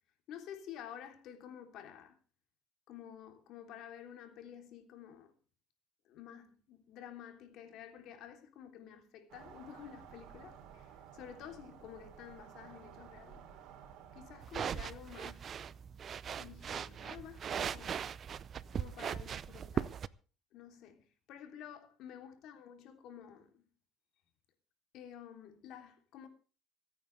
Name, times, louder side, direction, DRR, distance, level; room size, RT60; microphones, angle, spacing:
voice 1, 0.3-2.2 2.9-5.3 6.0-13.4 14.1-15.5 16.4-18.0 18.7-20.0 20.5-23.6 24.9-26.3, left 9 dB, 65° left, 3.3 m, -51 dB
sound 1, 9.3-14.5, right 8 dB, 70° right, 3.4 m, -54 dB
sound 2, 14.4-20.1, right 8 dB, 40° right, 0.6 m, -39 dB
26.0 x 9.2 x 3.4 m
cardioid pair, 125°, 0 cm